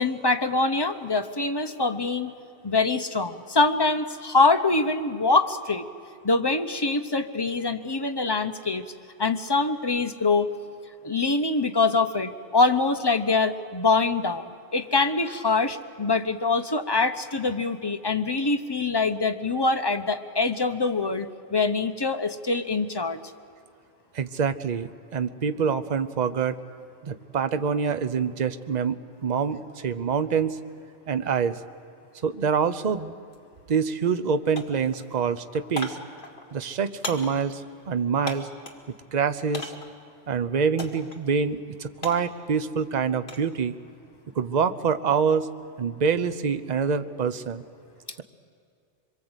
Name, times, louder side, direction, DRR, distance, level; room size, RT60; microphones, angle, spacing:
voice 1, 0.0-2.3 2.6-5.8 6.2-8.8 9.2-10.5 11.0-23.2, left 3 dB, 25° left, 7 dB, 0.8 m, -24 dB
voice 2, 24.1-26.6 27.0-29.0 29.2-30.6 31.1-31.6 32.2-33.1 33.7-36.0 36.5-37.6 37.9-38.5 39.1-39.7 40.3-43.8 44.4-45.5 45.8-47.6, right 6 dB, 40° right, 11 dB, 0.8 m, -26 dB
sound 1, 33.3-33.4 33.8-34.3 34.5-38.9 39.5-40.0 40.8-41.2 41.5-43.5 43.9-44.3, left 2 dB, 45° left, 1.9 m, -39 dB
25.0 x 23.0 x 8.1 m, 2.4 s
omnidirectional pair, 1.2 m